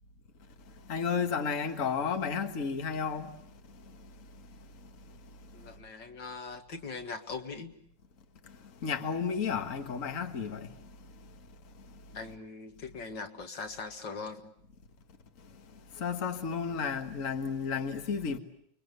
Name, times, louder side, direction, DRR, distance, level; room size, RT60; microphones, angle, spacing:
voice 1, 0.9-3.3 8.8-10.7 16.0-18.4, left 6 dB, 45° left, 1.9 m, -32 dB
voice 2, 5.5-7.7 12.1-14.5, left 4 dB, 75° left, 2.6 m, -41 dB
29.0 x 23.0 x 8.1 m
omnidirectional pair, 2.0 m